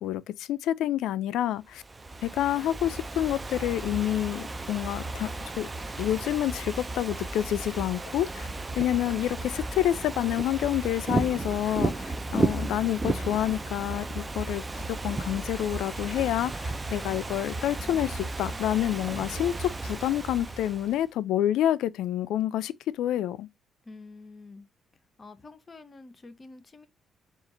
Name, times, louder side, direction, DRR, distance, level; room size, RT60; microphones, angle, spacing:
voice 1, 0.0-1.8 2.2-5.7 6.0-8.5 8.8-14.6 14.9-23.5, left 12 dB, 85° left, 0.3 m, -28 dB
Ocean / Fireworks, 1.7-21.0, right 2 dB, 20° right, 0.4 m, -34 dB
voice 2, 23.8-24.7 25.2-26.9, left 3 dB, 30° left, 0.7 m, -47 dB
4.3 x 2.4 x 3.8 m
cardioid pair, 90°, 0 cm